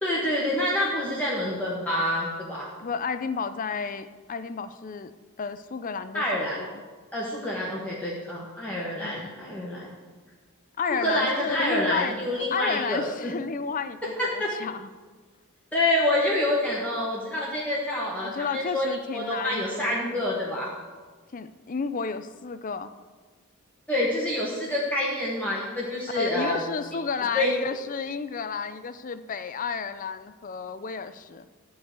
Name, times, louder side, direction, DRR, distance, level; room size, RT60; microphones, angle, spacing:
voice 1, 0.0-2.7 6.1-6.6 7.1-9.9 10.9-13.3 14.2-14.5 15.7-20.7 23.9-26.6 27.3-27.5, left 1 dB, 5° left, -6 dB, 1.5 m, -27 dB
voice 2, 2.8-5.1 5.4-6.8 9.0-9.3 10.8-14.9 18.2-20.2 21.3-22.9 26.1-31.5, left 5 dB, 40° left, 12 dB, 0.5 m, -32 dB
12.5 x 4.8 x 8.2 m, 1.4 s
head